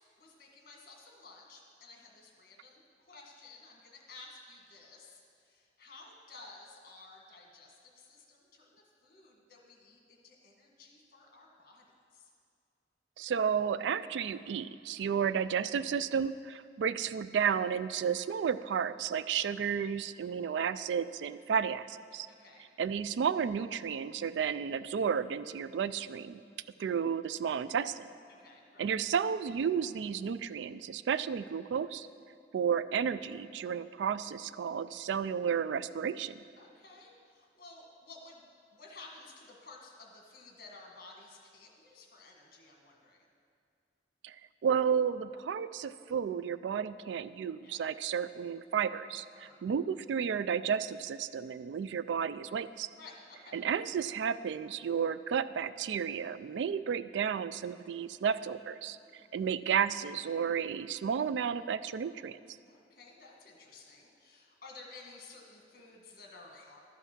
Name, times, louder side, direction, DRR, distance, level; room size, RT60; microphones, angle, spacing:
voice 1, 0.2-11.8 12.1-12.3 15.0-15.2 22.3-22.7 26.4-26.8 28.3-29.0 36.6-38.4 38.7-43.2 47.6-47.8 49.3-49.6 52.9-53.6 58.8-59.4 62.7-66.8, left 3 dB, 55° left, 0 dB, 1.7 m, -54 dB
voice 2, 13.2-22.3 22.8-26.4 26.8-28.1 28.8-32.1 32.5-36.4 44.2-44.4 44.6-52.9 53.5-59.0 59.3-62.4, right 7 dB, 80° right, 15 dB, 0.3 m, -32 dB
12.5 x 5.6 x 6.1 m, 2.3 s
head